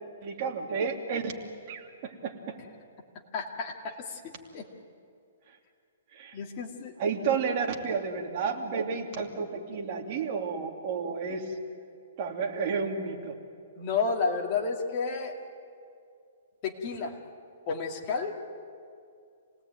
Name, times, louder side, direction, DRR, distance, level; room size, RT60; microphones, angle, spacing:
voice 1, 0.2-1.3 1.7-2.3 6.1-6.4 7.0-11.4 12.2-13.3, right 5 dB, 35° right, 1 dB, 2.7 m, -31 dB
voice 2, 3.3-4.6 6.3-7.0 13.8-15.3 16.6-17.2 17.7-18.4, left 5 dB, 30° left, 0 dB, 2.4 m, -31 dB
27.5 x 18.5 x 9.3 m, 2.3 s
hypercardioid pair, 165°, 0 cm